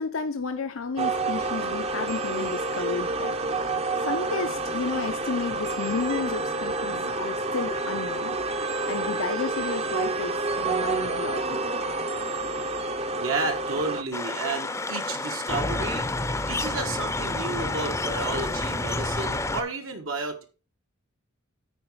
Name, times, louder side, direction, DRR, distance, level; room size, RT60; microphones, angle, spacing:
voice 1, 0.0-3.4 4.0-8.4 8.9-11.6, left 4 dB, 90° left, 0.7 m, -32 dB
sound 1, 1.0-14.0, right 3 dB, 30° right, 0.7 m, -29 dB
voice 2, 13.1-16.0 16.5-20.4, right 3 dB, 75° right, 1.4 m, -32 dB
sound 2, 14.1-19.6, left 2 dB, 15° left, 0.6 m, -29 dB
9.2 x 4.8 x 4.7 m
head